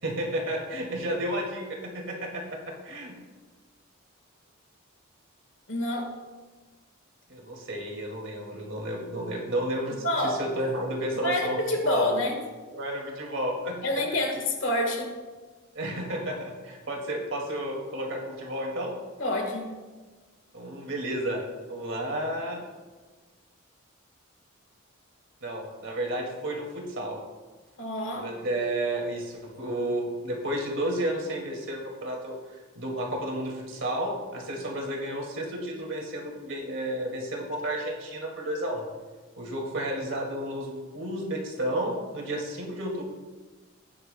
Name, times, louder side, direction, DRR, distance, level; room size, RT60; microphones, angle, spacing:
voice 1, 0.0-3.2 7.3-11.6 11.8-12.2 12.7-13.8 15.7-18.9 20.5-21.4 21.7-22.6 25.4-27.2 28.1-32.4 32.8-38.9 39.4-43.0, right 1 dB, 60° right, 0 dB, 2.2 m, -32 dB
voice 2, 5.7-6.1 10.0-10.4 11.2-12.4 13.8-15.1 19.2-19.7 27.8-28.3, left 1 dB, 60° left, 3 dB, 1.6 m, -27 dB
16.5 x 9.8 x 2.2 m, 1.3 s
head